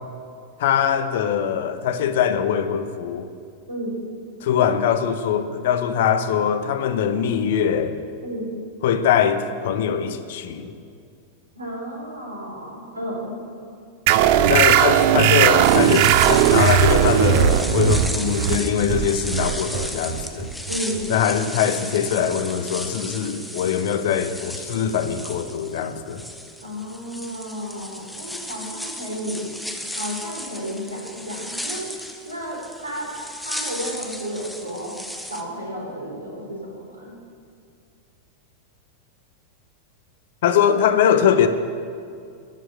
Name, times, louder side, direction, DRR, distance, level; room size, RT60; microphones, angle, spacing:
voice 1, 0.6-3.3 4.4-8.0 8.8-10.8 14.5-20.5 21.1-26.2 40.4-41.5, left 8 dB, 55° left, 10 dB, 0.9 m, -22 dB
voice 2, 3.7-4.1 8.2-8.6 11.6-13.3 20.7-21.1 26.6-29.5 29.9-31.9 32.2-33.1 33.4-34.9 35.3-37.1, equal, 75° right, -2 dB, 4.1 m, -32 dB
sound 1, 14.1-21.2, right 10 dB, 45° right, 0.6 m, -18 dB
sound 2, 15.6-35.4, left 1 dB, ahead, 1.1 m, -35 dB
13.0 x 7.9 x 9.3 m, 2.3 s
figure-of-eight pair, 90°, 0 cm